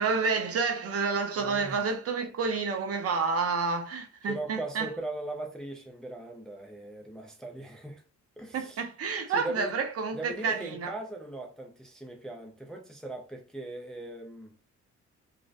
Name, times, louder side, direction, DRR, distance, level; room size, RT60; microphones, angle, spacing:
voice 1, 0.0-4.9 8.5-10.9, right 4 dB, 50° right, 0.6 m, -29 dB
voice 2, 1.4-1.8 4.3-8.0 8.4-8.8 9.3-9.7 10.1-14.5, right 2 dB, ahead, 0.4 m, -39 dB
2.5 x 2.1 x 2.4 m
cardioid pair, 90°, 30 cm